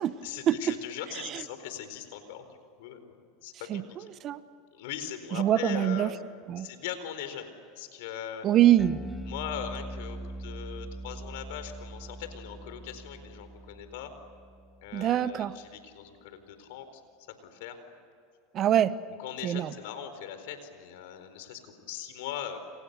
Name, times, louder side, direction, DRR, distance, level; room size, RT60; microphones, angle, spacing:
voice 1, 0.2-2.5 2.8-3.2 3.4-4.1 4.7-6.1 6.6-8.5 9.3-14.1 14.8-17.0 17.4-17.8 19.2-22.6, left 9 dB, 75° left, 9 dB, 4.3 m, -40 dB
voice 2, 5.4-6.1 6.5-6.7 8.4-9.0 14.9-15.5 18.5-18.9 19.4-19.7, right 11 dB, 40° right, 14 dB, 1.1 m, -24 dB
Bass guitar, 8.8-15.2, right 1 dB, 5° left, 2.1 m, -42 dB
30.0 x 27.5 x 6.9 m, 2.5 s
supercardioid pair, 115°, 0 cm